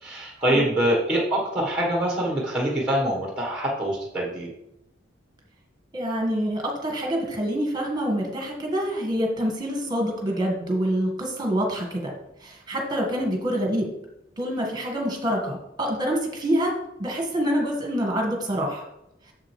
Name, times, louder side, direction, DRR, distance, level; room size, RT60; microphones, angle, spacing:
voice 1, 0.0-4.5, right 1 dB, 5° right, -2 dB, 1.3 m, -24 dB
voice 2, 5.9-12.1 12.4-13.9 14.4-16.7 17.0-18.9, equal, 20° right, 0 dB, 1.6 m, -26 dB
7.5 x 7.2 x 3.2 m, 0.84 s
head